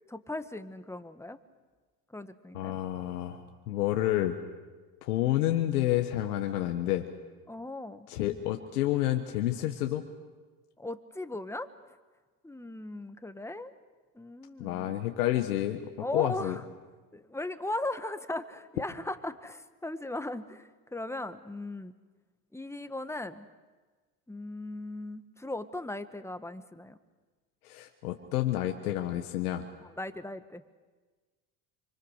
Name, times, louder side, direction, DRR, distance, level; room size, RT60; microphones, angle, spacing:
voice 1, 0.1-1.4 2.1-2.8 7.5-8.1 10.8-11.7 12.4-13.7 14.1-14.9 16.0-16.6 17.1-21.9 22.5-23.5 24.3-27.0 29.8-30.6, left 2 dB, 5° left, 10 dB, 1.6 m, -38 dB
voice 2, 2.5-4.4 5.0-7.1 8.1-10.0 14.6-15.8 16.1-16.6 27.6-29.6, left 13 dB, 85° left, 6 dB, 1.4 m, -29 dB
26.5 x 25.0 x 6.6 m, 1.3 s
hypercardioid pair, 80°, 44 cm